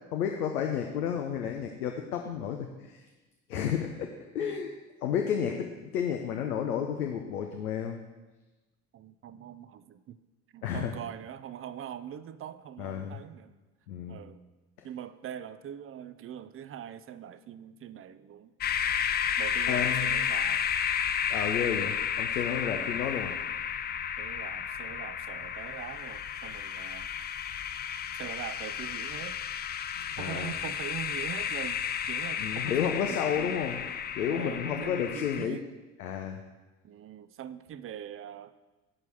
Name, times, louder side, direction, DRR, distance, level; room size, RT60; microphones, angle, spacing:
voice 1, 0.1-3.0 3.5-4.7 5.0-8.0 10.6-10.9 12.8-13.2 13.9-14.2 19.7-20.2 21.3-23.3 29.9-30.5 32.4-33.8 34.1-35.6 36.0-36.4, left 8 dB, 80° left, 4 dB, 0.8 m, -31 dB
voice 2, 8.9-10.2 10.5-13.5 14.1-14.4 14.8-18.5 19.4-20.6 22.6-23.0 24.2-27.1 28.1-29.4 30.1-33.6 34.3-35.6 36.8-38.5, right 9 dB, 30° right, 13 dB, 0.5 m, -42 dB
sound 1, 18.6-35.5, left 8 dB, 25° left, 0.4 m, -32 dB
11.0 x 4.7 x 6.1 m, 1.1 s
figure-of-eight pair, 60°, 45 cm